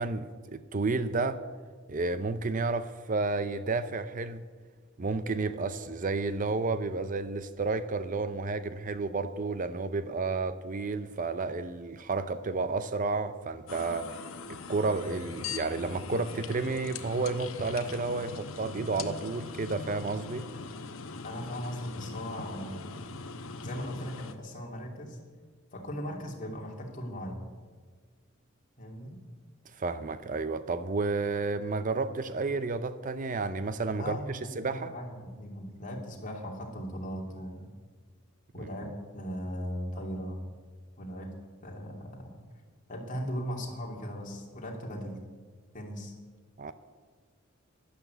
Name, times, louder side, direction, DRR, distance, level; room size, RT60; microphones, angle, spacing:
voice 1, 0.0-1.4 1.9-4.4 5.0-20.5 29.7-34.9 38.6-38.9 46.6-46.7, right 3 dB, 40° right, 0.6 m, -31 dB
sound 1, 13.7-24.3, left 4 dB, 85° left, 1.0 m, -41 dB
voice 2, 21.2-22.9 23.6-25.2 25.7-27.5 28.8-29.2 34.0-34.4 34.7-37.7 38.5-40.4 41.0-41.3 41.6-42.4 42.9-45.2 45.7-46.1, equal, 40° left, 2.7 m, -38 dB
12.0 x 11.5 x 8.2 m
head